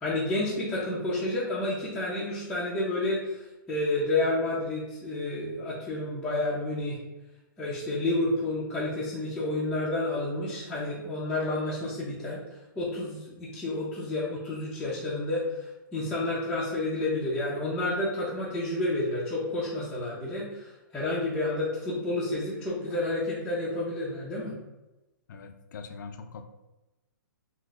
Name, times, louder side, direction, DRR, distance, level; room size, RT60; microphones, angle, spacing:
voice 1, 0.0-3.4 3.7-7.0 7.6-12.4 12.7-24.5, left 2 dB, 5° left, -9 dB, 0.5 m, -30 dB
voice 2, 25.3-26.5, left 5 dB, 65° left, 7 dB, 0.4 m, -42 dB
3.8 x 2.5 x 2.4 m, 1.0 s
hypercardioid pair, 155°, 11 cm